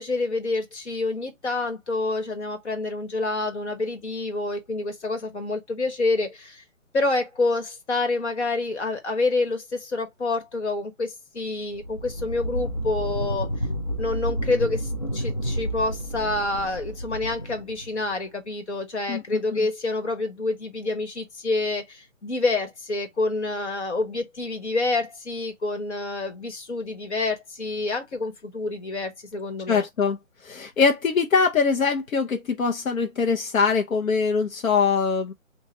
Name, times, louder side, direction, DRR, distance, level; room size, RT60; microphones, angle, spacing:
voice 1, 0.0-6.6 6.9-13.6 14.0-29.8, left 3 dB, 55° left, 1.6 m, -27 dB
sound 1, 11.7-18.1, equal, 35° left, 0.5 m, -30 dB
voice 2, 29.7-30.2 30.4-35.3, left 5 dB, 85° left, 0.9 m, -22 dB
3.8 x 2.5 x 2.9 m
hypercardioid pair, 175°, 40 cm